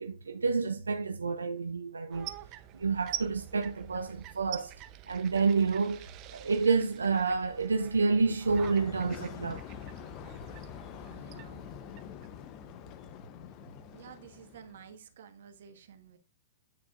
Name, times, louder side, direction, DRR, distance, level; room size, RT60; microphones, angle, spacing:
voice 1, 0.0-2.3 2.7-4.7 5.1-6.1 6.3-9.7, right 4 dB, 85° right, 0.6 m, -29 dB
sound 1, 2.1-12.9, right 13 dB, 35° right, 0.7 m, -46 dB
sound 2, 8.5-14.9, left 9 dB, 40° left, 0.8 m, -45 dB
voice 2, 11.0-11.7 13.9-16.2, right 8 dB, 65° right, 1.4 m, -52 dB
8.6 x 6.7 x 2.5 m
hypercardioid pair, 110°, 0 cm